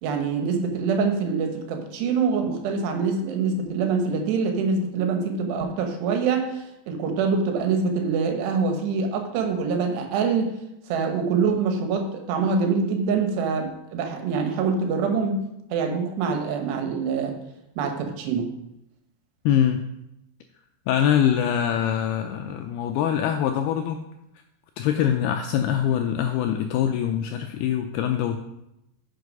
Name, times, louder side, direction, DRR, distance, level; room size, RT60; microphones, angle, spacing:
voice 1, 0.0-10.5 10.9-15.4 15.7-17.4 17.8-18.5, right 5 dB, 75° right, 5 dB, 3.2 m, -25 dB
voice 2, 19.5-19.8 20.9-24.0 24.8-28.4, left 9 dB, 85° left, 6 dB, 2.3 m, -23 dB
9.5 x 6.5 x 5.3 m, 0.86 s
omnidirectional pair, 5.1 m